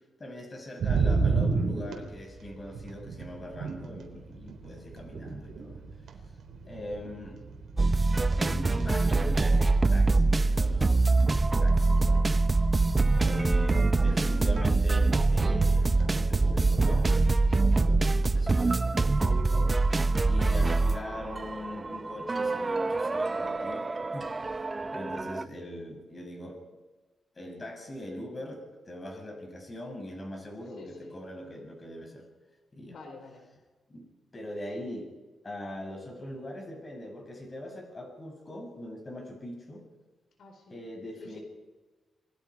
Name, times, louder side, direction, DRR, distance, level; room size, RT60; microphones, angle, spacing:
voice 1, 0.2-5.8 6.7-7.4 8.4-11.2 11.6-12.3 13.1-17.2 17.5-23.8 24.1-24.6 24.9-26.6 27.4-32.3 32.7-33.0 33.9-34.1 34.3-35.1 35.4-39.8 40.7-41.4, left 1 dB, 30° left, 2 dB, 6.9 m, -41 dB
sound 1, 0.8-18.4, right 4 dB, 70° right, 3.8 m, -35 dB
voice 2, 6.5-6.8 12.0-12.3 30.7-31.2 32.9-33.4 40.4-40.8 41.2-41.4, left 3 dB, 70° left, 4 dB, 4.4 m, -49 dB
sound 2, 7.8-25.4, right 3 dB, 25° right, 0.9 m, -24 dB
27.5 x 22.0 x 4.9 m, 1.3 s
cardioid pair, 100°, 0 cm